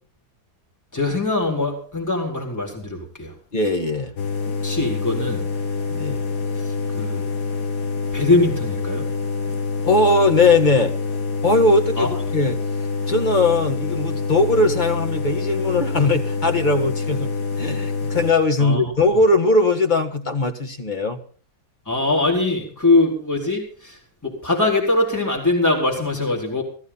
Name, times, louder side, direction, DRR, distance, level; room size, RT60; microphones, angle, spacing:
voice 1, 0.9-3.3 4.6-5.4 6.6-7.2 8.1-9.1 12.0-12.1 18.6-19.2 21.9-26.6, left 2 dB, 10° left, -1 dB, 4.1 m, -22 dB
voice 2, 3.5-4.1 5.9-6.2 9.9-10.9 11.4-12.6 13.1-17.3 17.6-21.2, left 2 dB, 30° left, 4 dB, 1.9 m, -19 dB
sound 1, 4.2-18.3, left 4 dB, 90° left, 1.7 m, -26 dB
16.0 x 14.5 x 4.1 m, 0.42 s
omnidirectional pair, 1.7 m